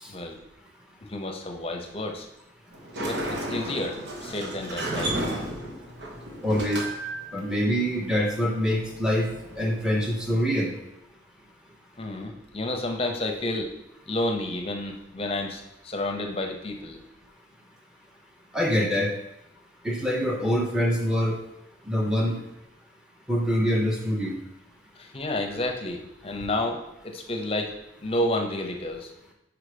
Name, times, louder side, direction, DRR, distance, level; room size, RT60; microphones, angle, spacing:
voice 1, 1.0-2.3 3.0-5.9 12.0-13.7 14.1-17.0 25.0-27.7 28.0-29.1, left 1 dB, 30° left, 3 dB, 0.7 m, -31 dB
Sliding door, 2.7-10.3, right 1 dB, 65° right, 1.2 m, -34 dB
voice 2, 6.4-6.8 7.3-9.3 9.6-10.7 18.5-19.1 19.8-21.4 21.8-22.4 23.3-24.4, equal, 5° right, 0 dB, 0.9 m, -25 dB
4.9 x 4.8 x 5.1 m, 0.85 s
head